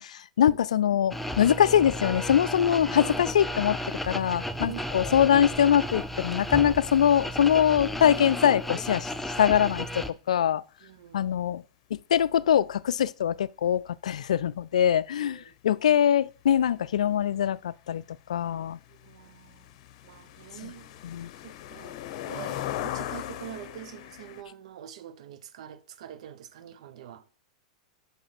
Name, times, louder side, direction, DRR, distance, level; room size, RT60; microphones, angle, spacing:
voice 1, 0.0-9.1 9.4-10.6 11.1-11.6 11.9-18.0 18.3-18.8 21.0-21.3, left 9 dB, 75° left, 0.3 m, -23 dB
sound 1, 1.1-10.1, equal, 5° left, 0.6 m, -33 dB
voice 2, 10.8-11.3 14.8-14.9 15.2-15.5 18.9-19.8 20.0-20.9 21.3-22.0 22.2-27.2, right 10 dB, 65° right, 0.9 m, -45 dB
sound 2, 16.4-16.5 16.7-24.4, left 12 dB, 55° left, 0.8 m, -39 dB
6.3 x 5.5 x 5.9 m
hypercardioid pair, 100°, 4 cm